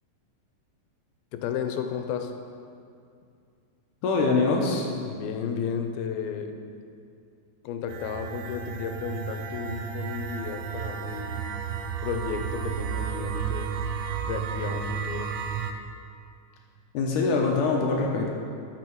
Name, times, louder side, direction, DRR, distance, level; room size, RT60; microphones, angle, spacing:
voice 1, 1.3-2.3 5.0-6.6 7.6-11.5 12.0-13.7 14.2-15.4, left 7 dB, 90° left, 6 dB, 2.5 m, -33 dB
voice 2, 4.0-4.9 16.9-18.3, left 3 dB, 75° left, 0 dB, 2.1 m, -23 dB
sound 1, 7.9-15.7, right 7 dB, 90° right, 1.8 m, -32 dB
12.0 x 6.5 x 4.6 m, 2.4 s
omnidirectional pair, 4.2 m